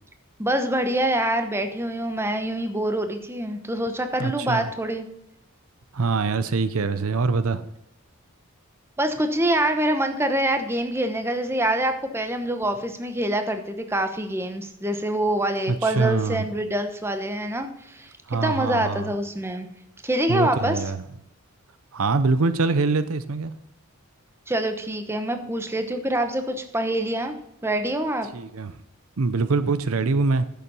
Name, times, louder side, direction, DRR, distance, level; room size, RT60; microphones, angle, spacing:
voice 1, 0.4-5.1 9.0-18.1 18.4-19.7 20.0-20.8 24.5-27.3 27.6-28.3, right 1 dB, 10° right, 7 dB, 0.9 m, -25 dB
voice 2, 4.2-4.7 5.9-7.7 15.7-16.5 18.3-19.1 20.3-21.0 21.9-23.5 28.3-28.8 29.2-30.5, right 4 dB, 70° right, 13 dB, 0.6 m, -24 dB
10.5 x 7.1 x 5.4 m, 0.81 s
head